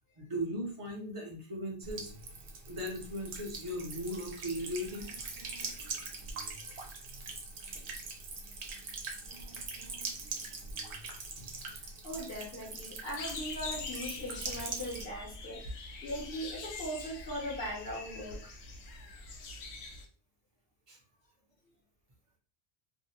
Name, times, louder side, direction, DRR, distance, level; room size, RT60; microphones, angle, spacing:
voice 1, 0.2-2.1 2.7-5.1 20.9-21.0, equal, 35° right, 0 dB, 0.7 m, -37 dB
Buzz / Water tap faucet / Trickle dribble, 1.8-15.0, right 4 dB, 85° right, 0.9 m, -42 dB
voice 2, 12.0-18.5, equal, 70° left, -6 dB, 1.1 m, -40 dB
sound 1, 13.2-20.1, left 3 dB, 85° left, 0.8 m, -44 dB
2.6 x 2.1 x 2.7 m, 0.41 s
omnidirectional pair, 1.1 m